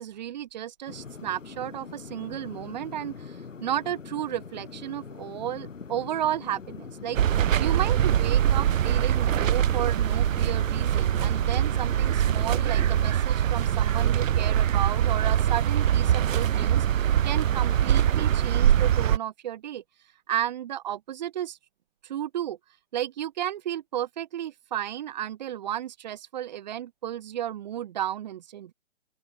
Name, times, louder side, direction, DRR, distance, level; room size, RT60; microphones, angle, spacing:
voice 1, 0.0-19.8 20.3-21.6 22.0-22.6 22.9-28.7, right 11 dB, 35° right, 1.1 m, -33 dB
sound 1, 0.9-13.2, left 5 dB, 75° left, 7.7 m, -43 dB
sound 2, 7.1-19.2, right 10 dB, 85° right, 0.5 m, -23 dB
open air
hypercardioid pair, 150°, 38 cm